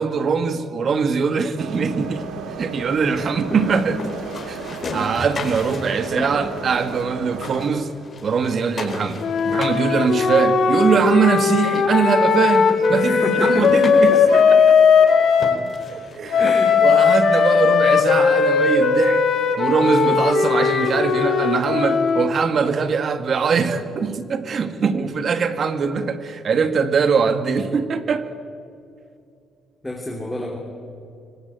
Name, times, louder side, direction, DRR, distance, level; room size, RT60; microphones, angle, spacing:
voice 1, 0.0-2.2 2.6-4.0 4.5-7.9 8.2-14.1 14.7-14.8 15.9-16.5 16.8-19.2 19.6-28.3, right 5 dB, 50° right, 10 dB, 1.8 m, -22 dB
sound 1, 1.6-7.7, right 5 dB, 75° right, 2.4 m, -34 dB
voice 2, 3.0-3.8 12.9-14.3 14.6-14.7 16.4-16.8 29.8-30.6, left 1 dB, 10° left, 0 dB, 3.4 m, -28 dB
sound 2, 3.3-7.0 7.3-11.1 11.7-11.8 12.3-12.4 12.7-16.9, left 3 dB, 40° left, 4.5 m, -35 dB
Wind instrument woodwind instrument, 9.2-15.6 16.3-22.3, left 5 dB, 65° left, 2.6 m, -17 dB
25.0 x 19.0 x 9.0 m, 2.5 s
cardioid pair, 90°, 0 cm